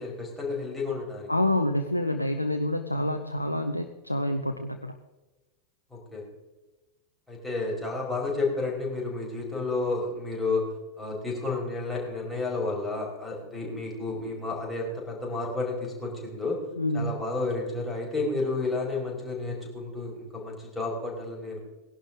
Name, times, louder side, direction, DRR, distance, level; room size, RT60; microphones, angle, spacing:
voice 1, 0.0-1.3 5.9-6.2 7.3-10.7 11.0-16.6 16.9-21.6, left 3 dB, 5° left, -4 dB, 5.5 m, -31 dB
voice 2, 1.3-5.0 16.8-17.2, left 1 dB, 85° left, 6 dB, 0.8 m, -27 dB
20.0 x 11.5 x 3.8 m, 1.1 s
figure-of-eight pair, 90°, 0 cm